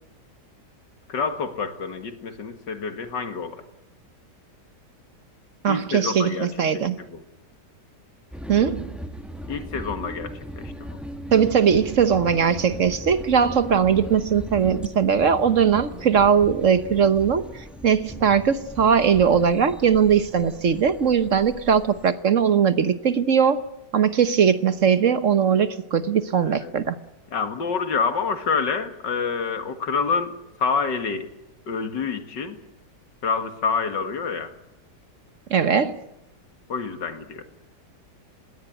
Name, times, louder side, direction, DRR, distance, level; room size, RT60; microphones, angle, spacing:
voice 1, 1.1-3.6 5.7-6.8 7.1-7.2 9.5-11.0 26.4-26.7 27.3-30.3 30.6-31.3 31.7-32.6 33.2-34.5 36.7-37.4, left 5 dB, 85° left, 9 dB, 2.6 m, -27 dB
voice 2, 5.6-7.1 8.5-9.0 11.3-23.6 23.9-27.0 35.5-36.0, right 7 dB, 50° right, 13 dB, 1.2 m, -20 dB
sound 1, 8.3-22.1, equal, ahead, 1.4 m, -38 dB
21.5 x 17.0 x 9.1 m, 0.92 s
omnidirectional pair, 1.9 m